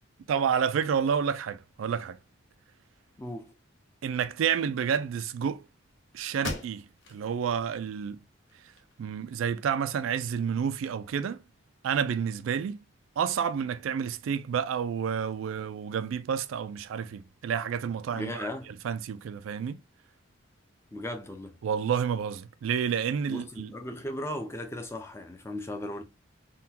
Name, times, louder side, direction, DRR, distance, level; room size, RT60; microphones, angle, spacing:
voice 1, 0.3-2.2 4.0-5.6 6.1-8.2 9.0-11.4 11.8-12.8 13.2-18.5 18.8-19.8 21.6-23.7, right 7 dB, 85° right, 0.3 m, -29 dB
voice 2, 3.2-3.5 18.1-18.7 20.9-21.6 23.3-26.0, left 1 dB, 15° left, 0.4 m, -37 dB
sound 1, 5.8-5.9 6.4-7.2 7.7-7.8 8.3-9.2, left 2 dB, 65° left, 0.7 m, -39 dB
3.7 x 2.2 x 2.7 m
head